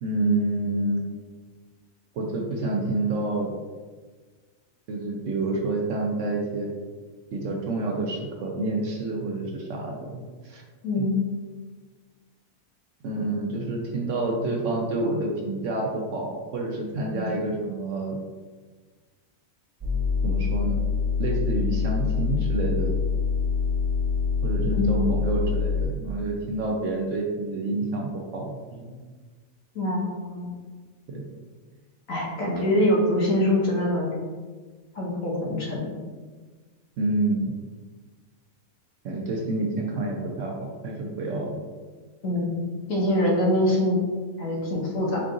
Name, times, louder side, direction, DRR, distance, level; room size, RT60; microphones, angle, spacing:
voice 1, 0.0-1.0 2.1-3.5 4.9-6.7 7.3-10.6 11.0-11.1 13.0-18.2 20.2-20.8 21.2-23.0 24.4-29.0 31.1-31.3 37.0-37.5 39.0-41.6, right 2 dB, 65° right, 0 dB, 0.8 m, -28 dB
voice 2, 10.8-11.2 17.1-17.3 24.7-25.1 29.7-30.5 32.1-34.1 34.9-36.0 42.2-44.0 44.4-45.2, left 1 dB, 65° left, -3 dB, 1.4 m, -24 dB
sound 1, 19.8-25.9, left 6 dB, 20° right, 0.9 m, -25 dB
4.6 x 2.5 x 3.7 m, 1.4 s
omnidirectional pair, 1.6 m